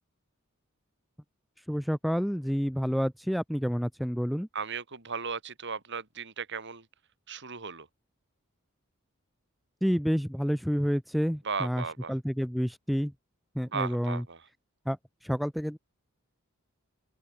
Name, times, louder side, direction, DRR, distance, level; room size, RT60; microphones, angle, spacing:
voice 1, 1.7-4.5 9.8-11.8 12.1-13.1 13.6-14.2 14.9-15.0 15.2-15.8, equal, ahead, 0.6 m, -29 dB
voice 2, 4.5-6.9 7.3-7.9 11.4-12.1 13.6-14.5, right 5 dB, 60° right, 3.7 m, -36 dB
open air
head